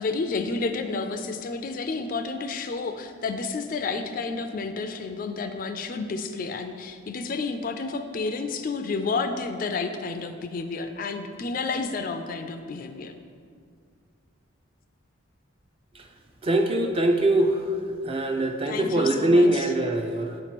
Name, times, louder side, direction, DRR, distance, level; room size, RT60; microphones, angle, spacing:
voice 1, 0.0-13.1 18.7-19.7, left 4 dB, 45° left, 7 dB, 0.3 m, -30 dB
voice 2, 16.4-20.4, right 1 dB, 25° right, 4 dB, 0.4 m, -23 dB
7.4 x 3.0 x 5.9 m, 2.1 s
head